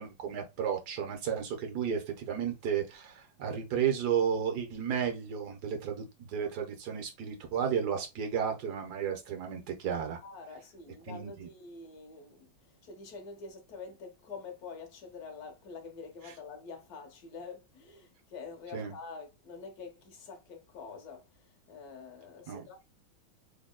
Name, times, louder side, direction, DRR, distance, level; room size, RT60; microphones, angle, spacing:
voice 1, 0.0-10.2 11.1-11.5 18.7-18.9 22.5-22.6, right 7 dB, 60° right, 1.4 m, -33 dB
voice 2, 10.2-22.8, left 4 dB, 55° left, 1.3 m, -46 dB
4.0 x 3.2 x 2.2 m
omnidirectional pair, 2.2 m